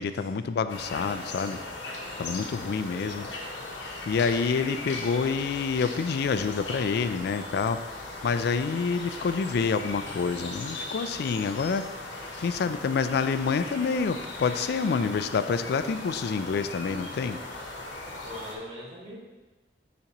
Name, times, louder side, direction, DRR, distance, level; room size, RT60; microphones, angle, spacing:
voice 1, 0.0-1.6 2.2-3.3 4.1-7.8 8.2-11.9 12.4-17.4, left 5 dB, 60° left, 11 dB, 0.3 m, -27 dB
sound 1, 0.7-18.5, left 2 dB, 85° left, 1.0 m, -38 dB
voice 2, 2.9-3.3 18.2-19.2, equal, 35° right, -7 dB, 2.1 m, -42 dB
6.9 x 5.1 x 3.0 m, 1.2 s
head